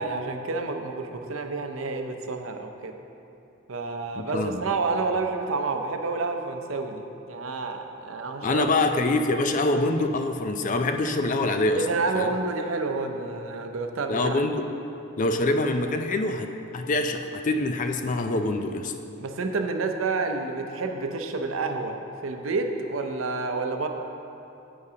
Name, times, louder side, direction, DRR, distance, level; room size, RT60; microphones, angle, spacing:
voice 1, 0.0-3.0 3.7-8.7 11.7-14.4 19.2-22.0 22.2-23.9, right 3 dB, 85° right, 5 dB, 0.6 m, -29 dB
voice 2, 4.2-4.7 8.4-11.8 12.1-12.3 14.1-14.7 15.2-18.9, left 2 dB, 40° left, 6 dB, 0.4 m, -25 dB
9.7 x 8.0 x 2.8 m, 2.8 s
head